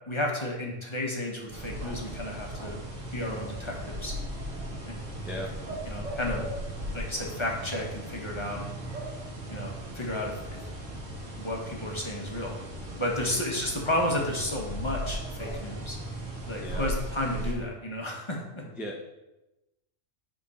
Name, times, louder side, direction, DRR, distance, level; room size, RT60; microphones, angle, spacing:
voice 1, 0.1-2.8 3.0-4.1 4.9-5.0 5.9-6.4 6.9-8.7 9.5-10.6 11.4-12.6 13.0-16.0 16.5-18.6, left 1 dB, 25° left, -1 dB, 1.0 m, -32 dB
sound 1, 1.5-17.5, right 1 dB, 75° right, 1.8 m, -37 dB
voice 2, 16.5-16.9 18.7-19.0, equal, ahead, -2 dB, 0.4 m, -37 dB
7.1 x 3.8 x 4.2 m, 0.98 s
omnidirectional pair, 1.3 m